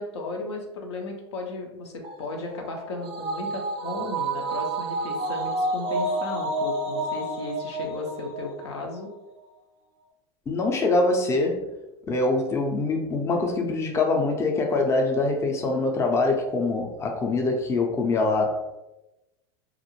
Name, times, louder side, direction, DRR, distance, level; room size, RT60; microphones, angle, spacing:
voice 1, 0.0-9.1, left 2 dB, 80° left, 2 dB, 0.5 m, -35 dB
sound 1, 2.0-8.7 9.0-9.1, right 2 dB, 40° right, 0.4 m, -30 dB
voice 2, 10.5-11.7 12.1-18.8, left 3 dB, 20° left, 2 dB, 0.4 m, -24 dB
2.4 x 2.0 x 2.9 m, 0.97 s
hypercardioid pair, 100°, 14 cm